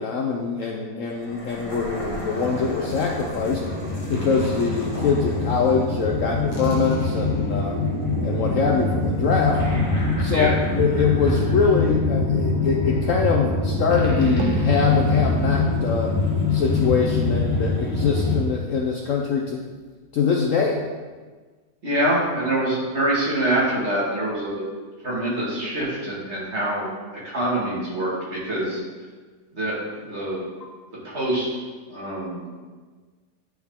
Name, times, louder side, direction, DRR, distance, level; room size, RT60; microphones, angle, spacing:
voice 1, 0.0-3.6 4.1-7.8 8.2-9.6 10.2-16.1 16.5-19.7 20.1-20.8, left 5 dB, 65° left, 0 dB, 0.9 m, -23 dB
sound 1, 1.2-18.4, left 3 dB, 25° left, 1.0 m, -24 dB
sound 2, 14.4-17.9, right 8 dB, 65° right, 0.8 m, -36 dB
voice 2, 21.8-24.6 25.0-26.9 27.2-28.8 29.5-30.5 31.0-31.5 31.9-32.5, right 1 dB, 40° right, -6 dB, 2.2 m, -25 dB
10.0 x 4.7 x 3.5 m, 1.4 s
omnidirectional pair, 1.8 m